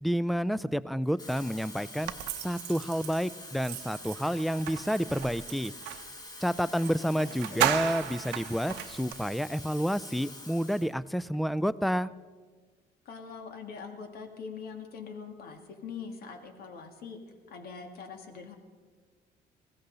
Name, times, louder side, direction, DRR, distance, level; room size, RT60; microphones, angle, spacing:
voice 1, 0.0-2.1 2.4-5.7 6.4-12.1, equal, ahead, 18 dB, 0.3 m, -29 dB
Water tap faucet / Fill (with liquid), 1.0-11.0 11.3-11.6, left 1 dB, 25° left, 1.7 m, -46 dB
sound 1, 2.1-6.1 6.8-6.9 7.2-9.2, right 13 dB, 85° right, 0.7 m, -34 dB
voice 2, 6.7-7.8 13.1-17.2 17.5-18.5, left 5 dB, 65° left, 5 dB, 1.9 m, -43 dB
20.5 x 15.5 x 4.0 m, 1.5 s
cardioid pair, 110°, 17 cm